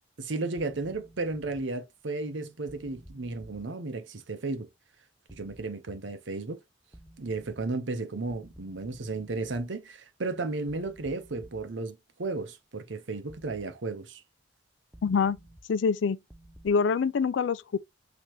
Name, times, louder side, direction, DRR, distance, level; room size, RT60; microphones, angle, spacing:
voice 1, 0.2-4.7 5.3-6.6 7.2-14.2, right 3 dB, 75° right, 0.8 m, -34 dB
sound 1, 0.6-1.6 2.7-3.6 5.3-5.6 6.9-7.6 8.3-9.6 10.7-11.6 13.3-13.6 14.9-15.6 16.3-16.7, right 1 dB, 5° right, 0.6 m, -52 dB
voice 2, 15.0-15.4 15.7-16.2 16.6-17.8, left 5 dB, 75° left, 0.4 m, -25 dB
5.9 x 2.9 x 3.0 m
head